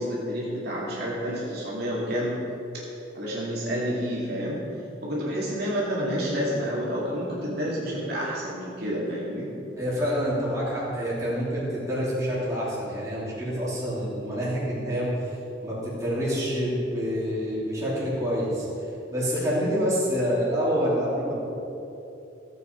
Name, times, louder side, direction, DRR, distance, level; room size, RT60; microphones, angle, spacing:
voice 1, 0.0-2.4 3.1-4.6 5.0-9.5, equal, 55° right, -6 dB, 2.5 m, -29 dB
voice 2, 9.8-15.1 15.6-18.6 19.1-21.3, equal, 15° right, -8 dB, 3.1 m, -27 dB
15.5 x 8.3 x 4.7 m, 3.0 s
head